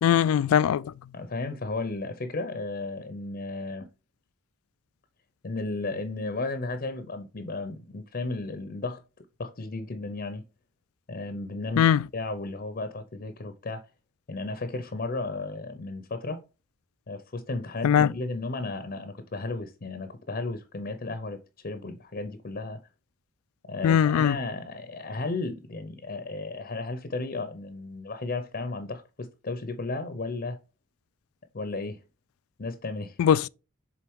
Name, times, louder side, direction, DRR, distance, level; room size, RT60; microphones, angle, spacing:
voice 1, 0.0-0.9 11.8-12.0 17.8-18.1 23.8-24.4 33.2-33.5, left 9 dB, 85° left, 0.3 m, -20 dB
voice 2, 1.1-3.9 5.4-9.0 9.4-10.4 11.1-13.9 14.3-16.4 17.1-22.8 23.6-30.6 31.5-32.0 32.6-33.2, left 3 dB, 45° left, 0.7 m, -34 dB
7.6 x 3.8 x 3.6 m
head